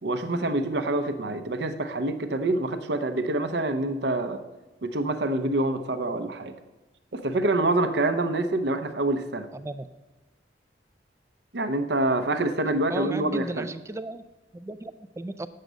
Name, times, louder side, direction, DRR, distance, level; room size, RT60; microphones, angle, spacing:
voice 1, 0.0-4.4 4.8-6.5 7.1-9.5 11.5-13.7, right 2 dB, 65° right, 9 dB, 0.7 m, -26 dB
voice 2, 9.5-9.9 12.9-14.2 14.5-15.5, right 2 dB, 15° right, 13 dB, 0.3 m, -35 dB
8.0 x 6.6 x 6.2 m, 1.1 s
head